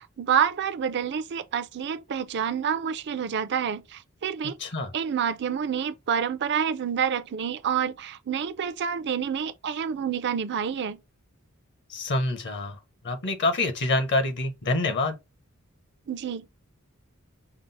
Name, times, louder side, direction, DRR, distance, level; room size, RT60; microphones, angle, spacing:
voice 1, 0.0-4.6 4.9-11.0 16.1-16.5, right 7 dB, 50° right, 0.4 m, -28 dB
voice 2, 4.6-4.9 11.9-12.8 13.0-15.2, left 2 dB, 55° left, 0.9 m, -26 dB
5.9 x 2.0 x 4.0 m
head